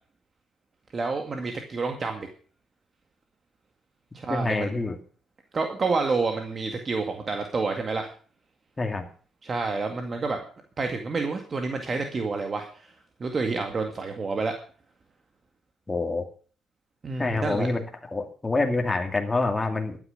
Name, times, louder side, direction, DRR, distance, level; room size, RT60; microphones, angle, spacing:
voice 1, 0.9-2.3 4.1-4.8 5.5-8.1 9.4-10.4 10.8-12.9 13.2-14.5 17.0-17.7, right 4 dB, 40° right, 4 dB, 2.0 m, -29 dB
voice 2, 4.3-5.0 8.8-9.1 15.9-16.2 17.2-17.8 18.1-20.0, left 3 dB, 20° left, 4 dB, 2.3 m, -26 dB
12.5 x 9.4 x 6.6 m, 0.41 s
cardioid pair, 90°, 0 cm